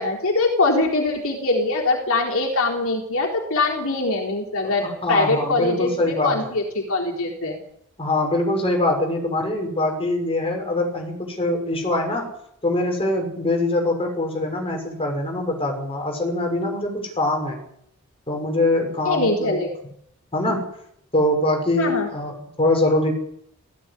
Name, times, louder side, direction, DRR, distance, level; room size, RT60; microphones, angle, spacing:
voice 1, 0.0-7.6 19.1-19.7 21.8-22.1, left 2 dB, 65° left, 0 dB, 3.9 m, -22 dB
voice 2, 4.8-6.5 8.0-12.3 12.6-17.6 18.3-19.5 20.3-20.7 21.1-23.1, left 1 dB, 25° left, 2 dB, 6.0 m, -23 dB
17.0 x 16.0 x 9.9 m, 0.74 s
head